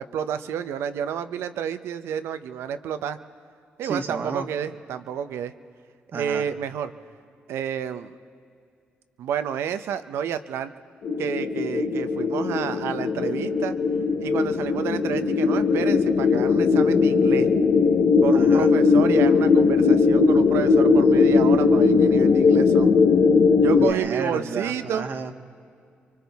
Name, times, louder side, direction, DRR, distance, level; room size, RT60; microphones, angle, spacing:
voice 1, 0.0-3.2 3.8-5.5 6.1-6.9 7.5-8.2 9.2-10.7 11.2-13.7 14.2-17.5 18.2-22.9 23.6-25.1, right 8 dB, 85° right, 11 dB, 0.7 m, -30 dB
voice 2, 3.8-4.5 6.1-6.5 18.3-18.7 23.7-25.3, right 4 dB, 60° right, 5 dB, 1.3 m, -32 dB
sound 1, 11.0-23.9, left 4 dB, 75° left, 1.0 m, -19 dB
30.0 x 24.5 x 3.5 m, 2.4 s
cardioid pair, 65°, 4 cm